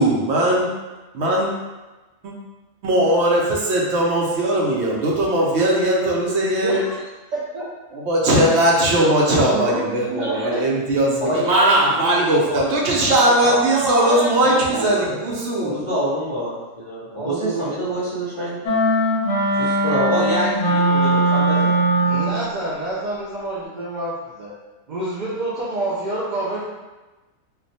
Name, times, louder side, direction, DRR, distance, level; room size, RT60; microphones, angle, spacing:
voice 1, 0.0-0.7 1.2-1.5 2.2-2.3 2.8-6.8 8.1-15.8, right 1 dB, 65° right, -3 dB, 0.8 m, -19 dB
voice 2, 6.4-7.7 9.0-10.6 11.2-11.4 13.4-15.9 17.1-18.0 22.0-24.5 24.9-26.7, right 1 dB, 80° right, -7 dB, 0.4 m, -28 dB
voice 3, 11.2-11.7 11.9-13.7 14.4-15.2 15.7-18.6 19.6-21.8, equal, 40° left, -10 dB, 0.5 m, -27 dB
sound 1, 18.7-22.5, right 1 dB, 70° left, 0.9 m, -19 dB
2.4 x 2.2 x 3.9 m, 1.2 s
omnidirectional pair, 1.4 m